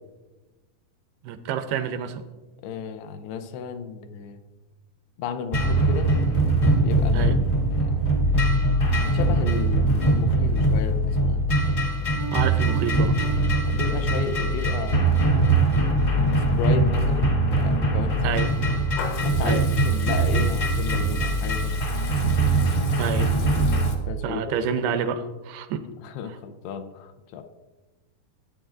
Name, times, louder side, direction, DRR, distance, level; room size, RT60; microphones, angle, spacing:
voice 1, 1.2-2.2 7.1-7.4 12.3-13.2 18.2-18.5 19.4-19.7 23.0-23.3 24.2-25.8, right 8 dB, 85° right, 10 dB, 2.5 m, -28 dB
voice 2, 2.6-4.4 5.2-6.1 6.8-7.3 7.6-8.1 9.1-11.5 13.7-15.6 16.4-18.4 19.2-21.8 24.1-24.9 26.0-27.4, left 7 dB, 90° left, 8 dB, 2.7 m, -34 dB
sound 1, 5.5-23.9, right 2 dB, 45° left, 0.8 m, -22 dB
Piano, 12.2-14.6, right 7 dB, 45° right, 0.5 m, -39 dB
Water tap faucet / Liquid, 18.2-23.9, left 5 dB, 70° left, 2.4 m, -40 dB
14.5 x 9.1 x 2.5 m, 1.2 s
omnidirectional pair, 4.4 m